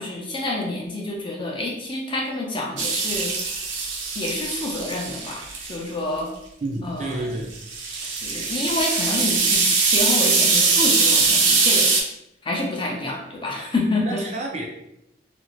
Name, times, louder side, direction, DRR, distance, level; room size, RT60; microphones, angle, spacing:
voice 1, 0.0-3.3 4.2-5.4 5.7-6.3 6.8-7.4 8.2-11.9 12.4-14.2, left 2 dB, 25° left, -1 dB, 0.4 m, -28 dB
sound 1, 2.8-5.8 7.5-12.0, right 4 dB, 85° right, 0.5 m, -21 dB
voice 2, 6.6-7.5 14.0-14.6, right 2 dB, 35° right, 0 dB, 0.4 m, -29 dB
2.5 x 2.0 x 2.9 m, 0.83 s
head